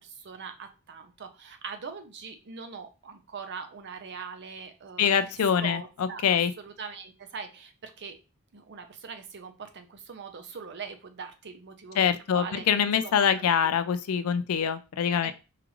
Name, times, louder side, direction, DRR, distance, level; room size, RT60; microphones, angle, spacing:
voice 1, 0.0-6.2 6.6-8.2 8.5-12.7 13.0-13.7 15.1-15.3, right 5 dB, 50° right, 7 dB, 0.6 m, -42 dB
voice 2, 5.0-6.5 12.0-15.3, left 7 dB, 70° left, 11 dB, 0.4 m, -25 dB
4.8 x 2.5 x 3.0 m, 0.31 s
head